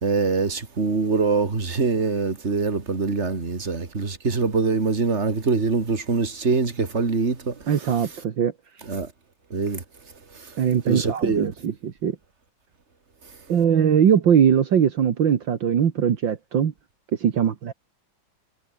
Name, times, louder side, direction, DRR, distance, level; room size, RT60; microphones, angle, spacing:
voice 1, 0.0-7.5 8.9-9.1 9.5-9.8 10.9-11.5, right 4 dB, 35° right, 2.8 m, -23 dB
voice 2, 7.7-8.5 10.6-12.2 13.5-16.7 17.2-17.7, right 8 dB, 70° right, 2.2 m, -21 dB
omnidirectional pair, 2.2 m